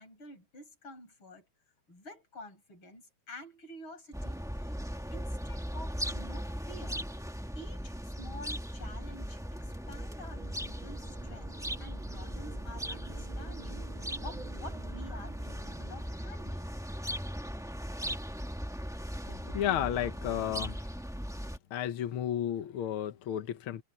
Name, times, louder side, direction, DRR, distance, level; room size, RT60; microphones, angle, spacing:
voice 1, 0.0-1.5 1.9-4.7 5.1-7.0 7.5-16.7, left 1 dB, 40° left, 6.3 m, -49 dB
sound 1, 4.1-21.6, equal, ahead, 1.1 m, -38 dB
sound 2, 7.8-17.8, right 8 dB, 50° right, 1.9 m, -54 dB
voice 2, 19.3-20.9 21.7-23.8, left 10 dB, 60° left, 1.5 m, -33 dB
omnidirectional pair, 3.3 m